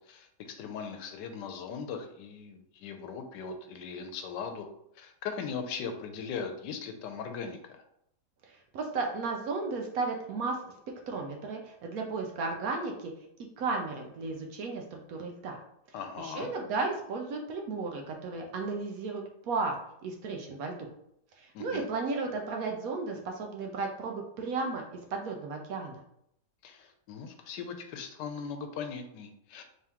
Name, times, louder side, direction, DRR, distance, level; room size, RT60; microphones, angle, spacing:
voice 1, 0.1-4.7 4.9-7.8 15.9-16.5 21.5-21.8 26.6-29.6, left 6 dB, 90° left, 6 dB, 1.2 m, -39 dB
voice 2, 8.5-10.6 11.1-13.1 13.6-15.6 16.2-19.7 20.0-20.8 21.4-26.0, right 3 dB, 70° right, 2 dB, 1.0 m, -34 dB
3.5 x 3.5 x 2.9 m, 0.73 s
omnidirectional pair, 1.8 m